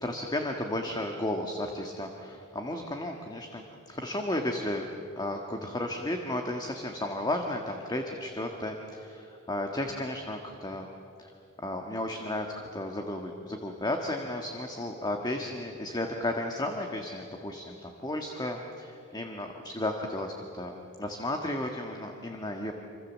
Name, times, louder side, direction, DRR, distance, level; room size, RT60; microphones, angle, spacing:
voice 1, 0.0-4.9 5.2-10.9 11.2-11.3 11.6-22.7, left 1 dB, 20° left, 3 dB, 1.6 m, -34 dB
26.5 x 25.5 x 7.4 m, 2.7 s
head